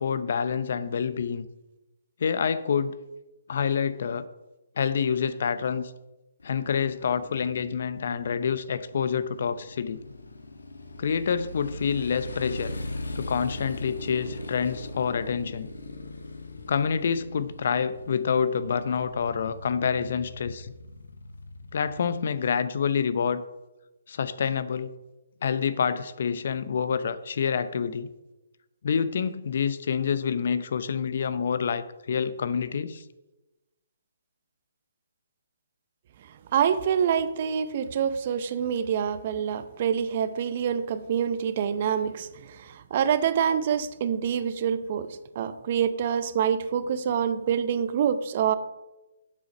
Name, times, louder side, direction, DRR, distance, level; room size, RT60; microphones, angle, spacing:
voice 1, 0.0-1.5 2.2-3.0 3.5-4.3 4.8-5.9 6.4-10.0 11.0-12.7 13.2-15.7 16.7-20.7 21.7-23.4 24.1-24.9 25.4-28.1 28.8-33.0, left 6 dB, 55° left, 14 dB, 0.6 m, -27 dB
Motorcycle, 6.4-22.2, left 2 dB, 80° left, 1.2 m, -40 dB
voice 2, 36.5-48.5, right 8 dB, 45° right, 13 dB, 0.6 m, -26 dB
7.6 x 6.3 x 5.3 m, 1.0 s
figure-of-eight pair, 140°, 0 cm